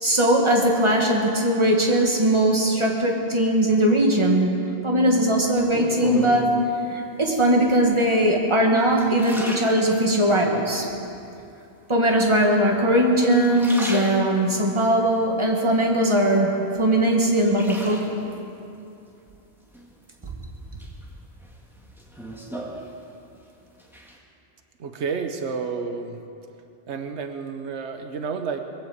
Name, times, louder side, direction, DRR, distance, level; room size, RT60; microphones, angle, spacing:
voice 1, 0.0-6.6 6.9-10.9 11.9-18.2, right 1 dB, 25° right, 0 dB, 1.9 m, -20 dB
sound 1, 5.6-6.6 7.4-7.9 8.4-10.4 10.9-11.5 12.3-13.0 13.3-14.6 15.1-16.3 16.7-18.4 19.7-20.4 20.8-23.4 23.7-24.2, right 1 dB, ahead, 1.9 m, -35 dB
voice 2, 24.8-26.2 26.9-28.6, right 5 dB, 90° right, 6 dB, 1.2 m, -30 dB
21.5 x 8.2 x 8.0 m, 2.7 s
omnidirectional pair, 1.1 m